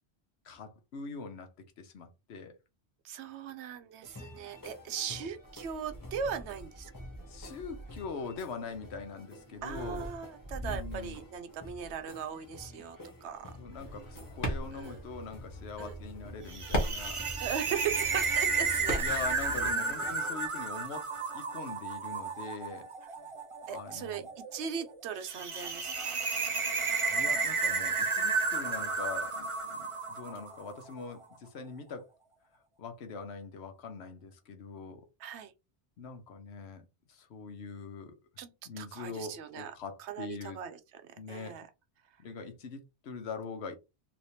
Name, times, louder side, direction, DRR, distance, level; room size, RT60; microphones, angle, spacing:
voice 1, 0.4-1.5 1.8-2.5 5.1-5.2 7.3-10.1 10.6-11.2 13.6-17.2 18.9-22.8 23.7-24.3 27.0-32.1 32.8-35.1 36.0-38.1 38.7-40.6 41.2-41.6 42.2-43.8, left 4 dB, 75° left, 1.0 m, -43 dB
voice 2, 3.0-6.9 9.6-13.6 14.7-15.0 15.8-15.9 17.4-19.3 19.5-20.4 23.7-26.2 35.2-35.5 38.4-39.7 40.0-41.0 41.3-41.7, right 7 dB, 80° right, 0.9 m, -39 dB
sound 1, 4.0-20.2, equal, 20° left, 0.8 m, -48 dB
sound 2, 13.8-19.7, equal, 55° left, 1.2 m, -38 dB
sound 3, 16.5-30.8, right 4 dB, 40° right, 0.5 m, -32 dB
3.2 x 2.9 x 2.7 m
omnidirectional pair, 1.1 m